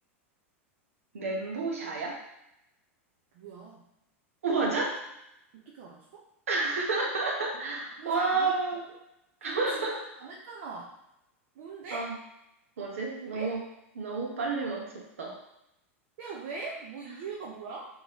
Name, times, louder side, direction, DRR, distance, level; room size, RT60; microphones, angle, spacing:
voice 1, 1.1-2.2 4.4-5.0 6.5-8.8 9.4-10.0 11.9-12.1 12.8-13.6 13.9-15.4, right 3 dB, 80° right, -1 dB, 1.2 m, -30 dB
voice 2, 3.3-3.8 5.5-6.2 7.5-7.7 8.0-8.6 9.5-10.9 11.6-12.1 13.3-13.5 16.2-17.9, right 4 dB, 65° right, -3 dB, 0.9 m, -41 dB
3.9 x 3.8 x 3.0 m, 0.85 s
hypercardioid pair, 100°, 7 cm